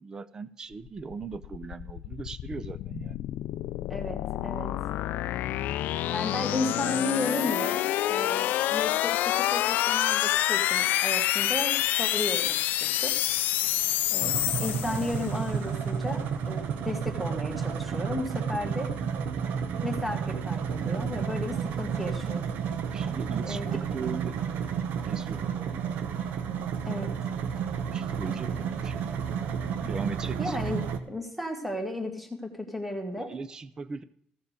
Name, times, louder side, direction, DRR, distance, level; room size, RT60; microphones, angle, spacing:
voice 1, 0.0-3.2 22.9-24.5 25.0-25.8 27.9-29.0 29.9-30.6 33.2-34.0, right 4 dB, 20° right, 15 dB, 0.5 m, -39 dB
sound 1, 1.0-15.4, left 14 dB, 70° left, 0.4 m, -28 dB
voice 2, 3.9-4.7 6.1-13.2 14.1-18.9 19.8-22.4 23.5-23.7 26.8-27.1 29.8-29.9 30.4-30.8 31.1-33.3, left 1 dB, ahead, 5 dB, 1.4 m, -34 dB
sound 2, 14.2-31.0, right 7 dB, 60° right, 0.9 m, -31 dB
15.0 x 7.2 x 5.0 m, 0.71 s
cardioid pair, 175°, 3 cm